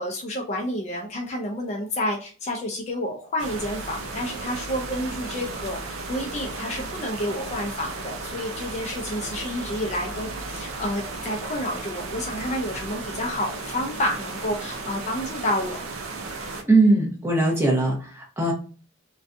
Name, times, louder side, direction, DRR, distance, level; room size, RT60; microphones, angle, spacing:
voice 1, 0.0-15.8, left 1 dB, 30° left, 1 dB, 0.3 m, -30 dB
sound 1, 3.4-16.6, right 3 dB, 75° right, 0.5 m, -34 dB
voice 2, 16.7-18.5, right 2 dB, 10° right, -2 dB, 0.6 m, -20 dB
2.5 x 2.2 x 2.4 m, 0.38 s
head